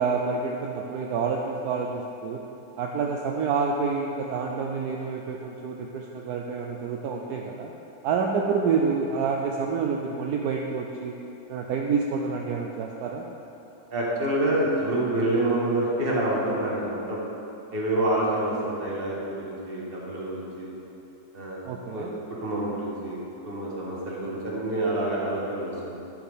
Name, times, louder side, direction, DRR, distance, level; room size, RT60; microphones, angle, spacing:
voice 1, 0.0-2.4 2.8-7.7 8.0-11.2 11.5-13.2 21.6-22.1, right 5 dB, 75° right, 1 dB, 1.1 m, -28 dB
voice 2, 13.9-17.2 17.7-20.7 21.3-21.6 21.8-22.1 22.4-23.2 23.4-26.0, right 1 dB, 35° right, -5 dB, 1.6 m, -27 dB
11.5 x 6.8 x 3.5 m, 2.9 s
omnidirectional pair, 1.8 m